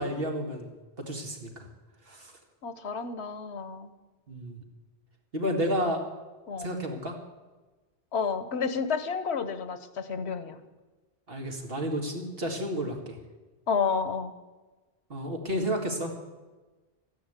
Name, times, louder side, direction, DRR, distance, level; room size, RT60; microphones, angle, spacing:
voice 1, 0.0-1.7 2.1-2.3 4.3-4.6 5.3-6.0 6.6-7.2 11.3-13.2 15.1-16.1, equal, 65° right, 2 dB, 2.4 m, -31 dB
voice 2, 2.6-3.9 6.5-6.7 8.1-10.6 13.7-14.3, left 5 dB, 90° left, 12 dB, 1.3 m, -30 dB
13.0 x 11.0 x 8.1 m, 1.2 s
omnidirectional pair, 1.1 m